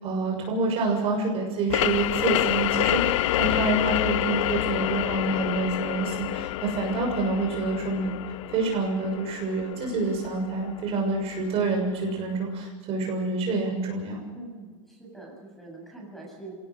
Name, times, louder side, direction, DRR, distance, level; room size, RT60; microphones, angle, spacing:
voice 1, 0.0-8.1 8.5-14.2, right 3 dB, 40° right, 1 dB, 6.7 m, -27 dB
sound 1, 1.7-11.1, left 16 dB, 75° left, 0.6 m, -28 dB
voice 2, 14.3-16.5, right 2 dB, ahead, 0 dB, 7.5 m, -44 dB
27.0 x 18.0 x 6.4 m, 1.3 s
supercardioid pair, 135°, 16 cm